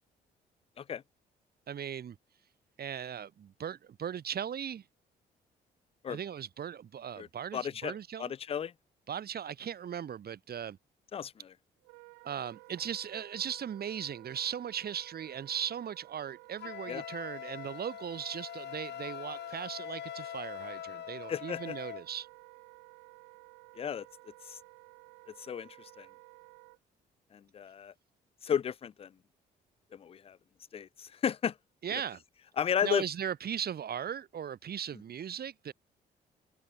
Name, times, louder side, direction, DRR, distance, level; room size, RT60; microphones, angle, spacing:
voice 1, 1.7-2.2 2.8-4.8 6.1-8.3 9.1-10.8 12.2-22.3 31.8-32.2 32.8-35.7, right 8 dB, 55° right, 1.9 m, -38 dB
voice 2, 7.5-8.7 11.1-11.5 16.9-17.0 21.3-21.7 23.8-24.1 24.5-24.6 25.4-26.1 27.3-27.9 28.4-29.1 29.9-30.4 30.7-31.5 31.9-32.0 32.6-33.0, left 8 dB, 30° left, 0.4 m, -34 dB
Wind instrument woodwind instrument, 11.8-26.8, right 28 dB, 90° right, 1.2 m, -55 dB
Wind instrument woodwind instrument 2, 16.6-22.0, left 12 dB, 65° left, 0.9 m, -43 dB
supercardioid pair, 60°, 19 cm